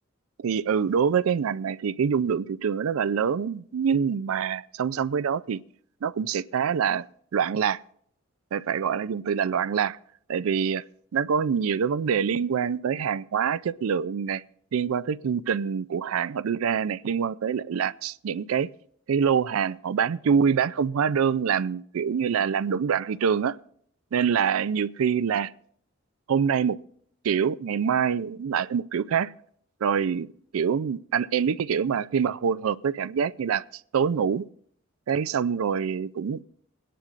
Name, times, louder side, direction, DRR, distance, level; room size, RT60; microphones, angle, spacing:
voice 1, 0.4-5.6 6.0-7.0 7.3-7.8 8.5-10.0 10.3-10.8 11.1-14.4 14.7-18.7 19.1-23.6 24.1-25.5 26.3-26.8 27.2-29.3 29.8-33.6 33.9-34.5 35.1-36.4, right 7 dB, 90° right, 0.4 m, -25 dB
21.5 x 10.0 x 2.5 m
head